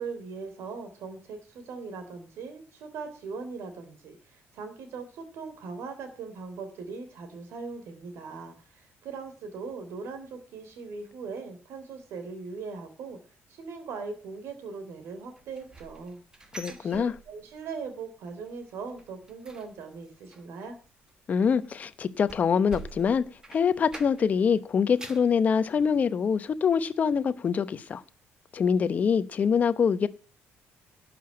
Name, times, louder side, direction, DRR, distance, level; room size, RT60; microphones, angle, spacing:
voice 1, 0.0-13.2 13.5-20.8, right 4 dB, 65° right, 3.3 m, -40 dB
sound 1, 15.4-17.7 18.0-18.3 18.6-24.4 24.7-25.4 25.8-25.9 26.4-26.5, right 3 dB, 15° right, 1.3 m, -47 dB
voice 2, 16.5-17.1 21.3-28.0 28.5-30.1, left 6 dB, 35° left, 0.9 m, -25 dB
12.0 x 7.0 x 8.6 m
cardioid pair, 160°, 5 cm